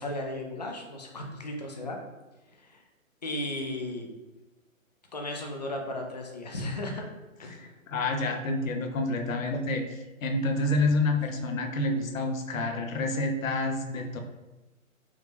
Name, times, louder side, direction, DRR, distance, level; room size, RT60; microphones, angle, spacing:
voice 1, 0.0-2.0 2.6-2.8 3.2-4.1 5.1-7.0 7.4-7.7, left 1 dB, 35° left, 2 dB, 0.4 m, -35 dB
voice 2, 7.9-14.2, left 2 dB, 70° left, 4 dB, 0.7 m, -28 dB
5.2 x 2.3 x 3.2 m, 1.1 s
hypercardioid pair, 155°, 41 cm